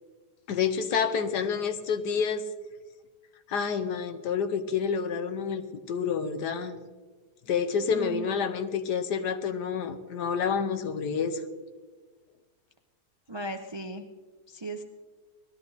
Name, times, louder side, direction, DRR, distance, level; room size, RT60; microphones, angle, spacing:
voice 1, 0.5-2.4 3.5-6.8 7.5-11.4, left 6 dB, 80° left, 9 dB, 1.5 m, -28 dB
voice 2, 7.9-8.3 13.3-14.0 14.5-14.8, right 1 dB, 35° right, 5 dB, 0.4 m, -36 dB
19.0 x 13.0 x 4.0 m, 1.4 s
omnidirectional pair, 1.7 m